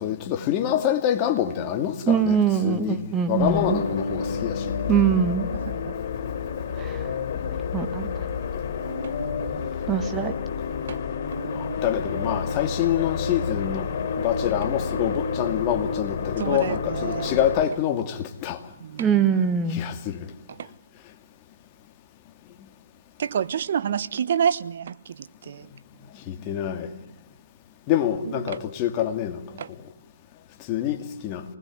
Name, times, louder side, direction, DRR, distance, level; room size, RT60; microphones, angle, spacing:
voice 1, 0.0-3.0 3.3-4.7 10.2-10.3 11.5-13.9 14.2-18.6 19.7-20.3 26.3-26.9 27.9-29.6 30.7-31.4, left 10 dB, 25° left, 2.5 m, -26 dB
voice 2, 2.1-3.8 4.9-5.5 6.8-7.0 7.7-8.1 9.9-10.3 19.0-19.8, right 7 dB, 15° right, 1.9 m, -22 dB
sound 1, 3.4-17.6, left 5 dB, 45° left, 6.4 m, -29 dB
voice 3, 5.5-6.0 9.0-9.1 10.9-11.0 16.4-17.4 18.8-19.4 20.6-20.7 23.2-25.7 28.2-28.6 29.6-29.7, right 8 dB, 55° right, 1.2 m, -29 dB
27.0 x 20.0 x 9.6 m
hypercardioid pair, 150°, 0 cm